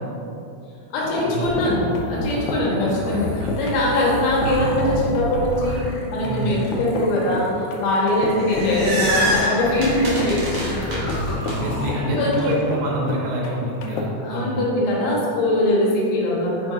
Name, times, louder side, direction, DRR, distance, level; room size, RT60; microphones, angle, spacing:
voice 1, 0.9-5.8 6.1-11.0 12.0-12.5 14.2-16.7, left 1 dB, 75° left, -5 dB, 2.9 m, -22 dB
sound 1, 1.0-14.0, left 2 dB, 90° left, 2.0 m, -32 dB
sound 2, 1.4-11.9, left 1 dB, 55° left, 2.3 m, -30 dB
voice 2, 3.1-3.7 6.2-6.5 11.4-14.6, right 1 dB, 80° right, -2 dB, 2.8 m, -28 dB
sound 3, 8.2-11.5, right 1 dB, 55° right, 1.5 m, -26 dB
7.8 x 2.6 x 5.2 m, 2.8 s
omnidirectional pair, 4.8 m